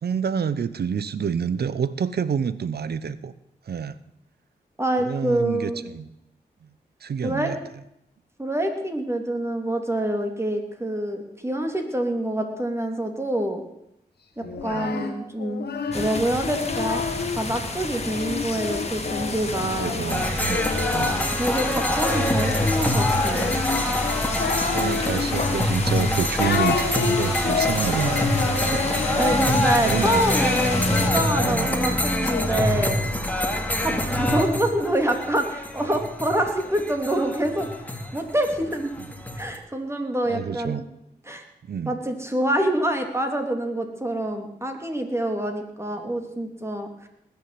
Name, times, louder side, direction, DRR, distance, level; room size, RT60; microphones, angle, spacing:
voice 1, 0.0-3.3 3.7-4.0 5.0-6.1 7.0-7.6 14.4-14.9 15.9-16.1 19.6-21.2 24.5-28.3 28.7-29.0 29.5-30.5 31.4-32.0 33.9-34.2 39.0-39.1 40.2-40.8 41.7-42.0, right 7 dB, 70° right, 16 dB, 0.8 m, -29 dB
voice 2, 4.8-5.8 7.2-7.5 8.4-13.6 14.4-15.6 15.9-17.0 17.3-20.0 21.4-23.6 29.2-33.0 33.8-37.7 38.1-38.9 39.4-40.8 41.3-41.4 41.9-47.1, right 1 dB, 15° right, 4 dB, 3.1 m, -26 dB
Singing, 14.4-17.4 18.0-32.5, left 5 dB, 75° left, 1.8 m, -30 dB
sound 1, 15.9-31.1, left 3 dB, 40° left, 2.2 m, -32 dB
sound 2, 20.1-39.6, left 1 dB, 10° left, 2.4 m, -25 dB
19.5 x 7.1 x 7.7 m, 0.80 s
cardioid pair, 50°, 17 cm